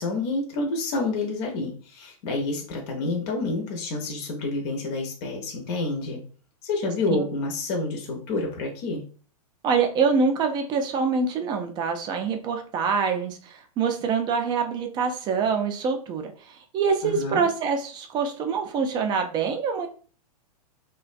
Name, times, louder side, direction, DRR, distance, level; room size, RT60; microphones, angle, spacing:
voice 1, 0.0-6.2 6.6-9.0 17.0-17.5, left 2 dB, 45° left, 1 dB, 0.6 m, -28 dB
voice 2, 9.6-19.9, right 5 dB, 20° right, 5 dB, 0.4 m, -25 dB
2.5 x 2.1 x 2.4 m, 0.40 s
hypercardioid pair, 130°, 20 cm